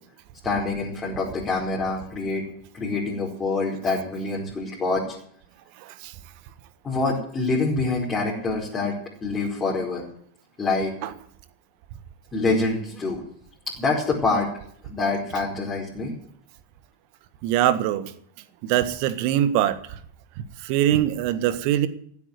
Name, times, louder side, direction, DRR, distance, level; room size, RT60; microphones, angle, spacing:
voice 1, 0.4-2.4 2.7-5.2 6.8-8.9 9.2-10.0 10.6-10.9 12.3-13.2 13.8-14.5 14.8-16.2, left 3 dB, 15° left, -5 dB, 4.8 m, -26 dB
voice 2, 5.8-6.1 11.0-11.1 17.4-18.1 18.6-20.0 20.6-21.9, right 12 dB, 45° right, 14 dB, 1.5 m, -23 dB
15.5 x 8.6 x 9.3 m, 0.63 s
figure-of-eight pair, 90°, 0 cm